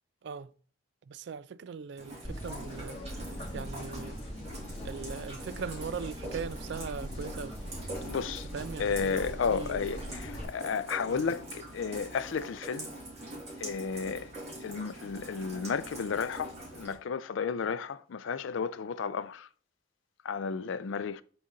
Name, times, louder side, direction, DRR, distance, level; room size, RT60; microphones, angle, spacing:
voice 1, 1.1-3.2 3.5-4.2 4.8-7.6 8.5-9.9 11.1-11.2, right 5 dB, 60° right, 0.3 m, -40 dB
Rain, 2.0-16.9, right 1 dB, 35° right, 2.5 m, -44 dB
sound 1, 2.2-10.4, equal, 30° left, 2.1 m, -41 dB
voice 2, 8.0-8.5 8.8-12.9 13.6-14.3 14.6-19.5 20.2-21.2, left 6 dB, 80° left, 0.4 m, -33 dB
7.7 x 4.0 x 3.7 m
head